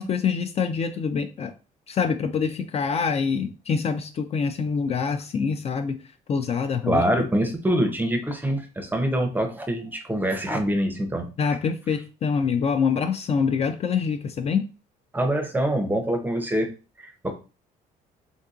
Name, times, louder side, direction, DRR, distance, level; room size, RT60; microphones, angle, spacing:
voice 1, 0.0-1.5 1.9-6.0 6.3-7.0 11.4-14.6, left 6 dB, 40° left, 8 dB, 0.4 m, -25 dB
voice 2, 6.8-11.6 15.1-16.7 17.0-17.3, right 1 dB, 10° right, 5 dB, 0.6 m, -25 dB
3.5 x 2.6 x 2.4 m, 0.33 s
cardioid pair, 110°, 17 cm